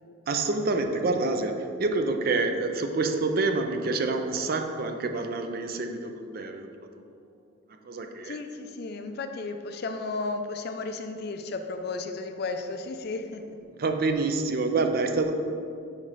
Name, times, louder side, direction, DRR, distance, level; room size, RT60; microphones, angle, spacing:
voice 1, 0.3-7.2 7.7-8.4 13.8-15.3, right 3 dB, 45° right, 6 dB, 0.4 m, -27 dB
voice 2, 8.2-13.6, left 3 dB, 50° left, 7 dB, 0.4 m, -34 dB
4.9 x 4.6 x 5.5 m, 2.4 s
head